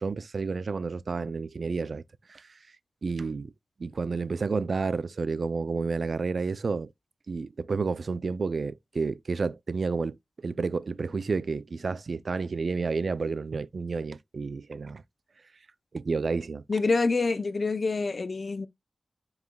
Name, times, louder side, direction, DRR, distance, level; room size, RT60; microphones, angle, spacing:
voice 1, 0.0-2.0 2.3-2.5 3.0-3.5 3.8-6.9 7.3-15.0 15.9-16.6, right 4 dB, 65° right, 0.4 m, -30 dB
voice 2, 16.7-18.7, left 3 dB, 55° left, 0.6 m, -26 dB
9.4 x 4.9 x 2.2 m
wide cardioid pair, 80°, 0 cm